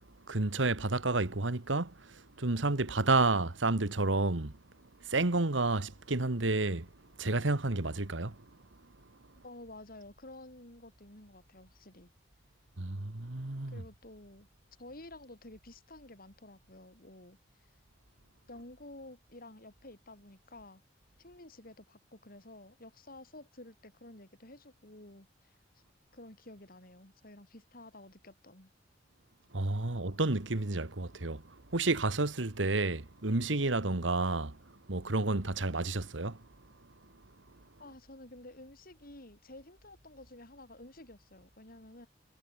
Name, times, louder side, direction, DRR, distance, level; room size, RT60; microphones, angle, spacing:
voice 1, 0.3-4.5 5.1-6.9 7.2-8.4 12.8-13.8 29.5-31.4 31.7-34.6 34.9-36.4, right 2 dB, 90° right, 1.7 m, -30 dB
voice 2, 9.4-12.1 13.7-14.5 14.8-17.7 18.5-20.8 21.2-25.5 26.1-28.7 37.8-42.1, left 1 dB, 50° left, 6.8 m, -51 dB
head